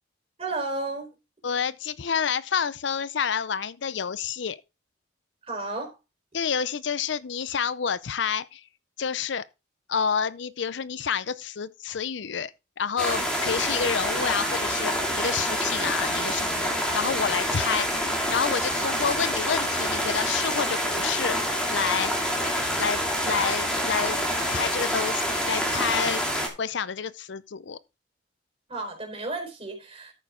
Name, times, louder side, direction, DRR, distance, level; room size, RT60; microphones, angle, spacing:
voice 1, 0.4-1.1 5.5-5.9 28.7-30.1, right 2 dB, 30° right, 4.4 m, -32 dB
voice 2, 1.4-4.6 6.3-8.6 9.0-9.4 9.9-12.5 12.8-18.0 18.3-22.1 22.8-24.2 24.5-26.2 26.6-27.8, left 6 dB, 70° left, 0.5 m, -29 dB
sound 1, 13.0-26.5, equal, 5° left, 2.7 m, -27 dB
13.5 x 6.8 x 3.7 m
head